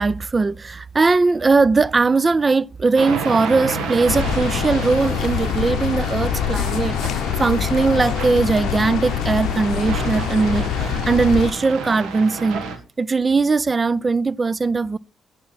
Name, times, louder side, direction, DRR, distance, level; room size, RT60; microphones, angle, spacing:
voice 1, 0.0-12.6 13.0-15.0, right 4 dB, 30° right, 0.3 m, -19 dB
sound 1, 3.0-12.8, right 4 dB, 80° right, 1.7 m, -31 dB
sound 2, 4.1-11.5, left 9 dB, 80° left, 0.6 m, -24 dB
9.3 x 7.3 x 3.9 m
cardioid pair, 90°, 0 cm